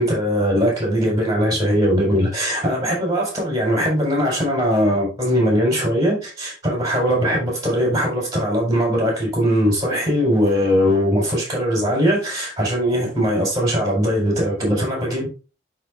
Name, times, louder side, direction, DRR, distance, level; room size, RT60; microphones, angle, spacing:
voice 1, 0.0-15.3, equal, 20° right, 4.4 m, -20 dB
12.0 x 4.5 x 2.5 m
head